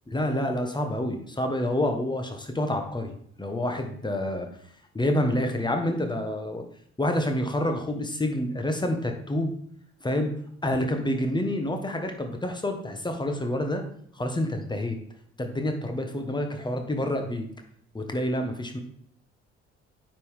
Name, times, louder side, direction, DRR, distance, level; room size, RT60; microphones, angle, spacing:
voice 1, 0.1-4.5 4.9-6.6 7.0-9.5 10.0-10.3 10.6-13.8 14.1-15.0 15.4-17.5 17.9-18.8, left 1 dB, 15° left, 5 dB, 1.5 m, -28 dB
9.2 x 5.6 x 3.5 m, 0.63 s
figure-of-eight pair, 50°, 33 cm